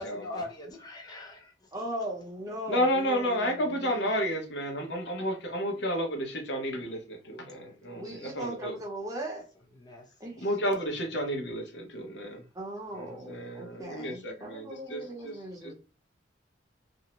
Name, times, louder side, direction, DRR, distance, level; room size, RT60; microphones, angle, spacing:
voice 1, 0.0-1.8 7.3-7.4 9.7-10.2 10.6-11.0, left 2 dB, 20° left, 0.6 m, -42 dB
voice 2, 1.7-4.1 7.9-9.5 10.2-10.5 12.5-15.7, right 1 dB, 20° right, 0.7 m, -38 dB
voice 3, 2.7-8.8 10.4-12.4 12.9-15.3 15.6-15.7, equal, 70° left, 0.7 m, -31 dB
2.6 x 2.1 x 2.9 m
head